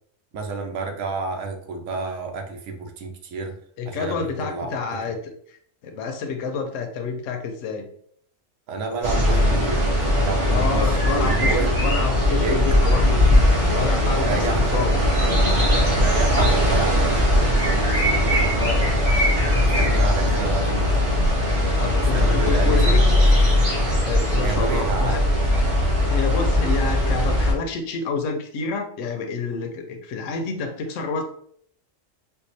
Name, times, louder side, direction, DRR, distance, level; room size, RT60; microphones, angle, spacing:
voice 1, 0.3-3.6 3.9-5.2 8.7-11.8 12.4-12.6 14.1-14.8 15.9-17.6 18.2-18.6 19.5-21.2 22.0-23.2 24.4-25.2, right 3 dB, 85° right, 4 dB, 1.0 m, -30 dB
voice 2, 3.8-5.2 5.5-7.9 10.5-13.2 13.7-14.9 18.5-18.8 21.7-23.0 24.0-25.2 26.1-31.2, left 5 dB, 75° left, 4 dB, 0.9 m, -28 dB
sound 1, 9.0-27.5, left 1 dB, 50° right, 1.4 m, -19 dB
4.6 x 2.2 x 2.6 m, 0.62 s
omnidirectional pair, 1.3 m